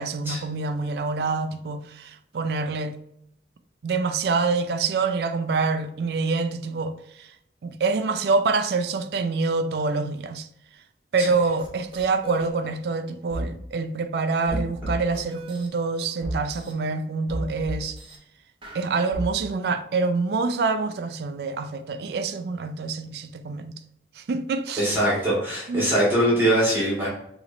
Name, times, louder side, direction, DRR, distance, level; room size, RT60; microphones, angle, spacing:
voice 1, 0.0-3.0 3.8-7.3 7.6-10.5 11.1-18.0 18.7-23.7 24.2-24.9 25.7-25.9, right 4 dB, 60° right, 0.3 m, -26 dB
sound 1, 11.6-11.7 11.9-12.5 13.3-13.5 14.5-15.7 16.2-16.7 17.3-18.2 18.6-19.3, right 1 dB, 30° right, 0.7 m, -32 dB
voice 2, 24.8-27.1, right 1 dB, 10° right, 1.2 m, -22 dB
4.0 x 2.9 x 2.5 m
head